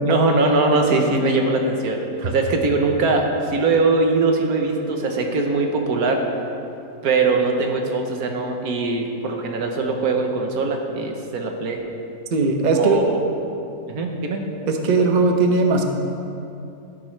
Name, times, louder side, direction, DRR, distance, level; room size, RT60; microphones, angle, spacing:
voice 1, 0.0-6.2 7.0-11.8 12.7-13.1 13.9-14.4, right 3 dB, 90° right, 3 dB, 1.5 m, -21 dB
voice 2, 12.3-13.1 14.6-15.8, right 3 dB, 35° right, 4 dB, 0.8 m, -18 dB
13.0 x 11.0 x 3.3 m, 2.7 s
omnidirectional pair, 1.5 m